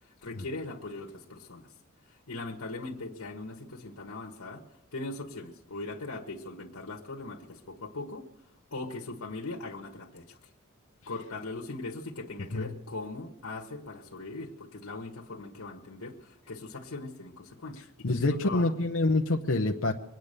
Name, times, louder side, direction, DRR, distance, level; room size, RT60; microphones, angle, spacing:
voice 1, 0.0-1.7 2.0-4.6 4.9-8.2 8.7-10.4 11.1-17.8 18.2-18.7, left 2 dB, 90° left, 1 dB, 1.4 m, -40 dB
voice 2, 18.0-19.9, left 2 dB, 65° left, 2 dB, 0.8 m, -26 dB
23.0 x 9.3 x 6.7 m, 0.93 s
head